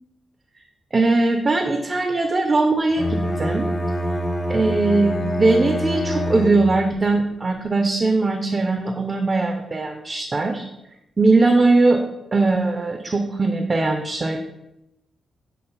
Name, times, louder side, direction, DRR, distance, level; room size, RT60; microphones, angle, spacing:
voice 1, 0.9-3.7 4.5-10.7 11.2-12.0 12.3-14.5, right 3 dB, 35° right, 5 dB, 0.4 m, -20 dB
Bowed string instrument, 2.9-7.0, equal, 35° left, 0.8 m, -25 dB
5.6 x 2.0 x 3.9 m, 0.88 s
cardioid pair, 70°, 0 cm